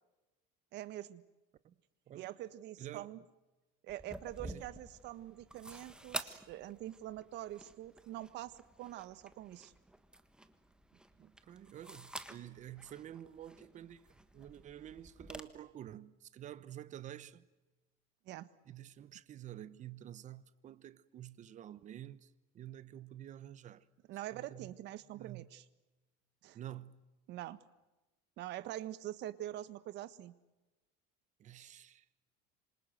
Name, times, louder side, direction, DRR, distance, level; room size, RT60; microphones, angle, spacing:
voice 1, 0.7-1.2 2.1-3.2 3.8-9.7 18.3-18.5 24.1-25.6 26.4-26.6 27.3-27.6 28.4-30.3, right 13 dB, 55° right, 1.4 m, -45 dB
voice 2, 2.8-3.1 4.4-4.7 11.2-14.1 14.3-17.4 18.7-22.3 22.5-23.9 24.3-24.7 25.1-25.5 26.5-27.1 31.4-32.0, right 12 dB, 35° right, 1.0 m, -49 dB
sound 1, 3.9-15.4, right 1 dB, 5° right, 1.5 m, -50 dB
27.0 x 26.5 x 7.8 m
cardioid pair, 150°, 21 cm